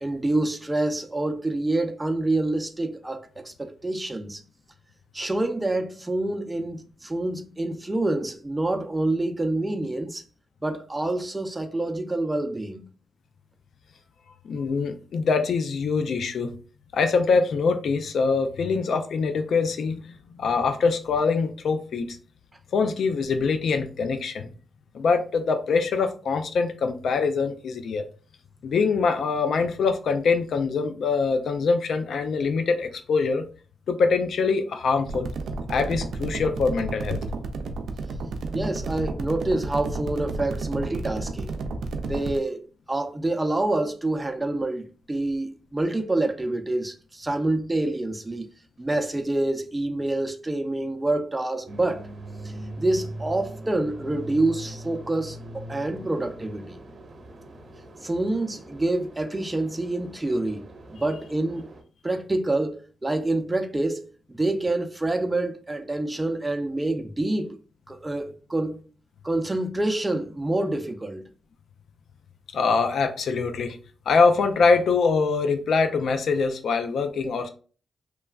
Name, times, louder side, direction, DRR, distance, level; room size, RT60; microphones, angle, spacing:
voice 1, 0.0-4.4 5.1-10.2 10.6-12.9 38.5-41.6 42.1-42.6 42.9-48.5 48.8-52.1 52.8-56.8 58.0-60.7 61.0-61.7 62.0-67.6 67.9-68.8 69.2-71.2, right 2 dB, 20° right, 0.5 m, -27 dB
voice 2, 14.4-16.5 16.9-22.2 22.7-24.5 24.9-28.1 28.6-33.4 33.9-35.3 35.7-37.2 72.5-73.8 74.1-77.5, left 4 dB, 75° left, 0.4 m, -24 dB
sound 1, 35.1-42.4, right 3 dB, 80° right, 0.4 m, -32 dB
sound 2, 51.7-61.8, right 1 dB, 55° right, 0.9 m, -41 dB
3.1 x 2.2 x 2.3 m
cardioid pair, 55°, 0 cm